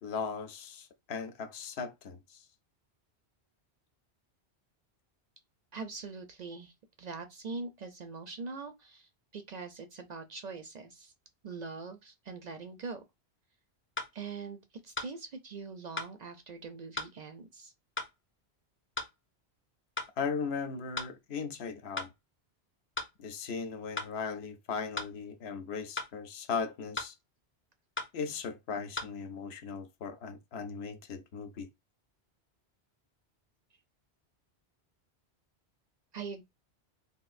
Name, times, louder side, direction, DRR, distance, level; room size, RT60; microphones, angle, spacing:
voice 1, 0.0-2.4 20.2-22.1 23.2-27.1 28.1-31.7, left 5 dB, 75° left, 0.8 m, -37 dB
voice 2, 5.7-6.7 7.0-11.1 11.4-13.0 14.1-17.7 36.1-36.4, right 4 dB, 55° right, 0.5 m, -42 dB
sound 1, 14.0-14.1 15.0-15.1 16.0-16.1 17.0-17.1 18.0-18.1 19.0-19.1 20.0-20.1 21.0-21.1 22.0-22.1 23.0-23.1 24.0-24.1 25.0-25.1 26.0-26.1 27.0-27.1 28.0-28.1 29.0-29.1, left 3 dB, 15° left, 0.4 m, -36 dB
3.5 x 2.6 x 2.4 m
omnidirectional pair, 1.1 m